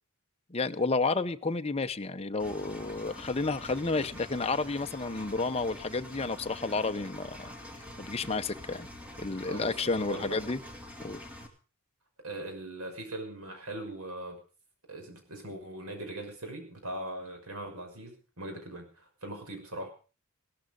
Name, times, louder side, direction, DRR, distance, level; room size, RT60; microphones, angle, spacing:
voice 1, 0.5-7.5 8.0-8.9 9.2-10.6 11.0-11.2, left 3 dB, 30° left, 8 dB, 0.8 m, -31 dB
Engine, 2.4-11.5, left 1 dB, 5° right, 2.5 m, -46 dB
voice 2, 9.4-10.4 12.2-14.4 14.9-19.9, right 1 dB, 80° right, 4 dB, 6.0 m, -40 dB
17.0 x 13.5 x 5.2 m, 0.37 s
head